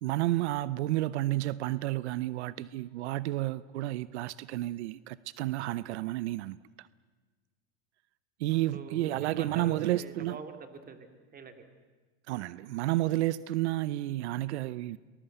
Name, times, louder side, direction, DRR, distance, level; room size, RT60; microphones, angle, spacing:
voice 1, 0.0-6.9 8.4-10.4 12.3-15.0, right 16 dB, 85° right, 0.7 m, -31 dB
voice 2, 8.5-11.6, right 5 dB, 25° right, 2.7 m, -45 dB
24.5 x 20.0 x 8.1 m
supercardioid pair, 125°, 33 cm